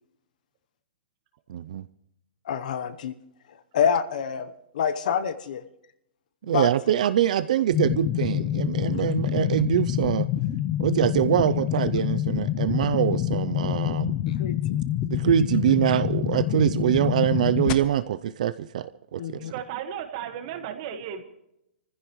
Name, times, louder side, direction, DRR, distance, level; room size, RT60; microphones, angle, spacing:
voice 1, 1.5-1.8 6.4-10.3 10.8-14.1 15.1-19.4, right 11 dB, 45° right, 14 dB, 0.4 m, -24 dB
voice 2, 2.5-3.1 3.7-5.6 6.5-6.7 9.0-9.1 14.3-14.6 19.2-19.5, left 7 dB, 50° left, 12 dB, 0.9 m, -27 dB
sound 1, 7.7-17.7, left 12 dB, 20° left, 0.5 m, -27 dB
voice 3, 19.4-21.2, right 9 dB, 30° right, 8 dB, 1.5 m, -34 dB
25.0 x 15.0 x 3.1 m, 0.82 s
hypercardioid pair, 175°, 5 cm